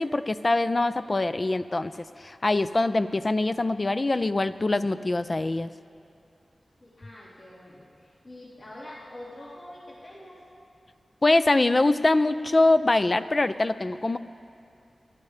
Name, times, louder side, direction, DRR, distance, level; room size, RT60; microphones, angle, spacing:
voice 1, 0.0-1.9 2.2-5.7 11.2-14.2, left 2 dB, 35° left, 12 dB, 0.4 m, -23 dB
voice 2, 6.8-10.4, left 1 dB, 55° left, -8 dB, 3.1 m, -45 dB
26.5 x 11.5 x 3.3 m, 2.6 s
wide cardioid pair, 70°, 0 cm